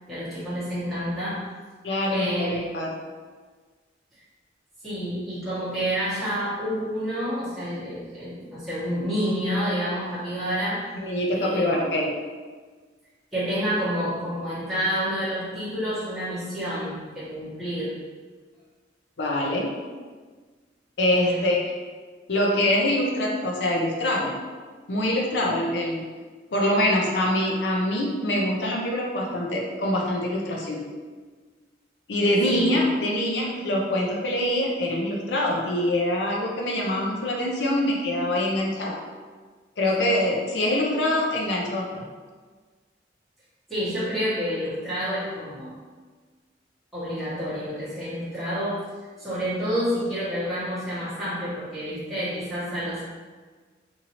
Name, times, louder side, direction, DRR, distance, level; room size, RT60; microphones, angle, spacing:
voice 1, 0.1-1.5 2.1-2.6 4.8-10.9 11.3-11.8 13.3-18.0 21.1-21.4 32.5-32.8 43.7-45.7 46.9-53.0, equal, ahead, -14 dB, 1.1 m, -29 dB
voice 2, 1.8-2.9 11.0-12.1 19.2-19.7 21.0-21.7 22.3-24.4 24.9-26.0 26.5-30.8 32.1-39.0 39.8-42.1, left 1 dB, 70° left, -1 dB, 0.6 m, -24 dB
2.7 x 2.6 x 2.9 m, 1.4 s
head